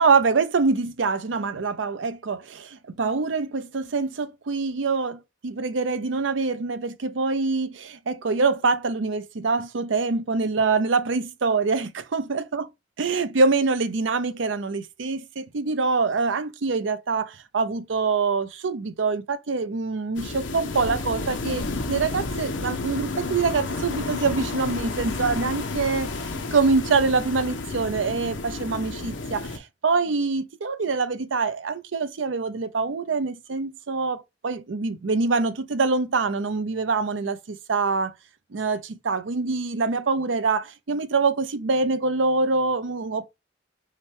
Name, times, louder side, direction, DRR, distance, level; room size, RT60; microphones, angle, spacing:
voice 1, 0.0-12.6 13.0-38.1 38.5-43.3, right 4 dB, 85° right, 0.6 m, -25 dB
sound 1, 20.2-29.6, left 3 dB, 80° left, 0.8 m, -31 dB
5.6 x 2.2 x 3.3 m
head